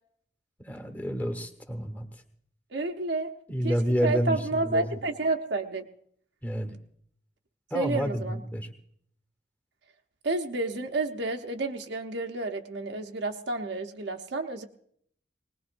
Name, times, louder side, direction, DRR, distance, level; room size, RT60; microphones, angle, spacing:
voice 1, 0.6-2.1 3.5-4.8 6.4-6.7 7.7-8.7, equal, 10° left, 6 dB, 1.3 m, -29 dB
voice 2, 2.7-3.3 3.6-3.8 4.0-5.9 7.7-8.4 10.2-14.6, right 2 dB, 75° right, 3 dB, 0.9 m, -30 dB
20.0 x 20.0 x 2.6 m, 0.66 s
head